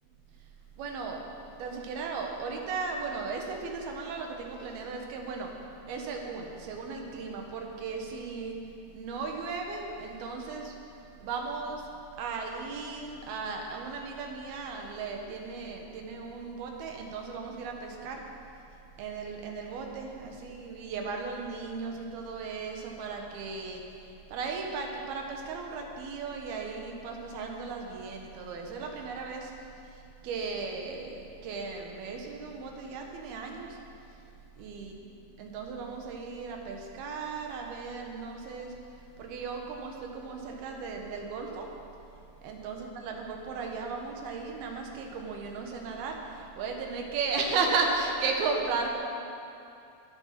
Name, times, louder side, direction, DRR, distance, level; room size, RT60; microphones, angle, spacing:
voice 1, 0.8-1.2 1.6-5.5 5.9-8.6 8.9-10.7 11.2-11.9 12.2-18.2 19.0-29.5 30.2-31.1 31.4-33.8 34.6-34.9 35.4-38.7 39.2-41.7 42.4-48.9, right 4 dB, 65° right, 1 dB, 2.8 m, -35 dB
23.5 x 7.9 x 5.9 m, 2.6 s
omnidirectional pair, 5.6 m